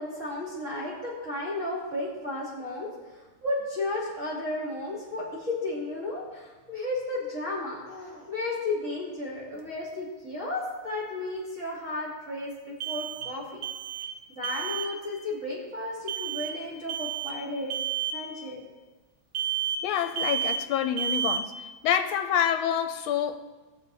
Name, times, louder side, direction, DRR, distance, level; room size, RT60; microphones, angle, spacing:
voice 1, 0.0-13.7 14.3-17.7 18.1-18.6, left 2 dB, 35° right, -7 dB, 2.9 m, -33 dB
sound 1, 9.5-9.6 12.8-13.4 13.6-14.2 14.4-14.9 16.1-16.6 16.9-17.4 17.7-18.2 19.3-19.9 20.2-20.7 21.0-21.5, right 8 dB, 75° right, 1.6 m, -31 dB
voice 2, 19.8-21.5 21.8-23.4, left 9 dB, 80° left, 8 dB, 1.5 m, -27 dB
19.0 x 6.9 x 4.1 m, 1.2 s
omnidirectional pair, 2.4 m